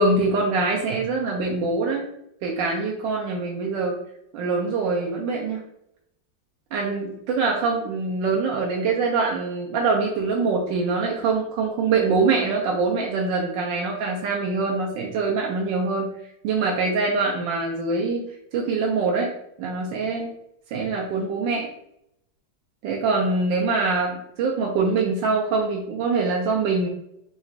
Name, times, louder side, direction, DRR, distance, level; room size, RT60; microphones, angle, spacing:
voice 1, 0.0-2.1 2.4-4.0 4.3-5.6 6.7-16.1 16.4-18.2 18.5-19.3 19.6-20.3 20.7-21.7 22.8-26.9, right 4 dB, 80° right, -1 dB, 1.3 m, -24 dB
4.0 x 2.4 x 4.4 m, 0.77 s
omnidirectional pair, 2.0 m